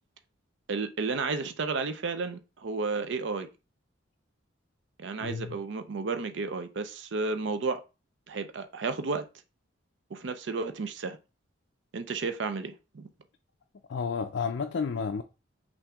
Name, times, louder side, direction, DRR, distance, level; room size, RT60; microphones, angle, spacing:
voice 1, 0.7-3.5 5.0-7.8 8.3-9.3 10.1-11.2 11.9-13.1, right 4 dB, 65° right, 0.5 m, -32 dB
voice 2, 5.2-5.6 13.9-15.2, left 5 dB, 65° left, 0.4 m, -31 dB
5.7 x 2.6 x 3.5 m
head